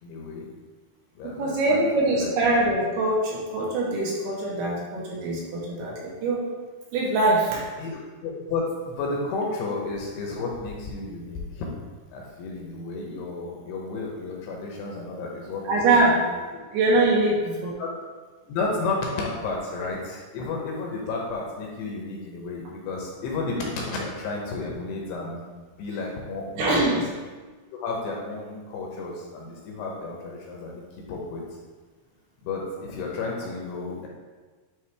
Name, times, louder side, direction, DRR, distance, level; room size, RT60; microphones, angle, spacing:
voice 1, 0.0-0.5 1.2-2.3 7.8-11.7 12.1-16.3 17.8-17.9 18.5-25.4 25.8-27.0 27.7-30.8 31.1-31.4 32.4-34.1, left 3 dB, 75° left, -1 dB, 2.7 m, -32 dB
voice 2, 1.4-6.5 6.9-7.7 15.7-16.2 16.7-17.8 26.6-27.0, right 2 dB, 75° right, -3 dB, 2.7 m, -23 dB
9.3 x 3.1 x 3.4 m, 1.4 s
omnidirectional pair, 5.1 m